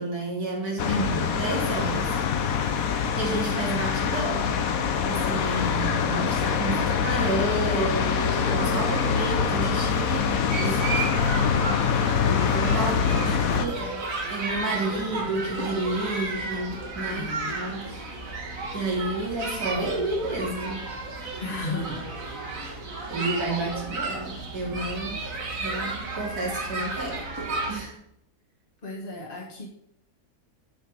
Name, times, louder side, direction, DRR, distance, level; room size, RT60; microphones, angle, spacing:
voice 1, 0.0-2.2 3.2-4.6 5.1-11.2 12.2-12.9 13.2-13.8 14.3-18.2 18.7-20.9 22.6-22.7 23.1-25.2 25.6-27.2 27.7-28.0, right 2 dB, 80° right, -2 dB, 3.1 m, -31 dB
sound 1, 0.8-13.7, left 6 dB, 65° left, 1.3 m, -24 dB
voice 2, 0.8-1.3 10.7-11.2 12.7-14.0 14.7-15.2 17.1-17.6 21.4-22.1 28.8-29.7, left 1 dB, 35° left, -2 dB, 1.6 m, -35 dB
sound 2, 10.5-27.8, right 3 dB, 60° right, 2.1 m, -33 dB
10.5 x 5.6 x 4.7 m, 0.75 s
omnidirectional pair, 1.6 m